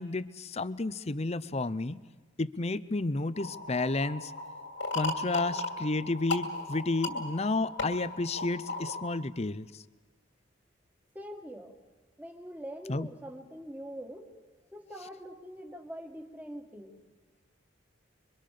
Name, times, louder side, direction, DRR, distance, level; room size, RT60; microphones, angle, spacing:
voice 1, 0.0-2.0 2.4-4.3 4.9-9.8 12.9-13.1, left 2 dB, 35° left, 16 dB, 0.7 m, -31 dB
sound 1, 3.3-9.0, left 2 dB, 70° left, 2.7 m, -36 dB
voice 2, 11.1-11.7 12.2-14.3 14.7-17.0, equal, 10° right, 3 dB, 2.0 m, -43 dB
27.0 x 24.0 x 6.7 m, 1.4 s
head